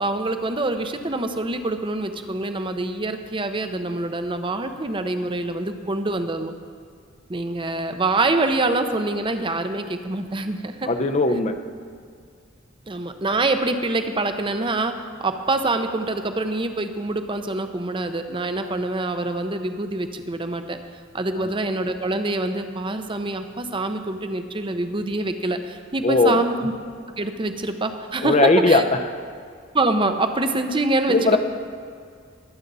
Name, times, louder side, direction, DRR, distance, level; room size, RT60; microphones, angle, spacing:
voice 1, 0.0-6.5 7.3-10.9 12.9-14.9 15.2-20.8 21.1-26.7 27.2-28.8 29.7-31.4, right 2 dB, 25° right, 7 dB, 0.7 m, -25 dB
voice 2, 10.9-11.5 26.0-26.4 28.2-28.8 31.1-31.4, left 3 dB, 35° left, 8 dB, 0.7 m, -18 dB
21.0 x 8.1 x 4.1 m, 2.2 s
head